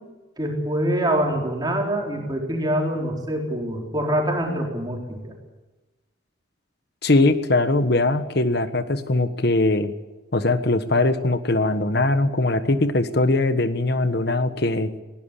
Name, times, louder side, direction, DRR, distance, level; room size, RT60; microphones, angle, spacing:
voice 1, 0.4-5.3, right 1 dB, 20° right, 0 dB, 4.1 m, -25 dB
voice 2, 7.0-9.9 10.3-14.9, left 2 dB, 55° left, 10 dB, 1.4 m, -21 dB
20.5 x 17.0 x 8.5 m, 1.2 s
head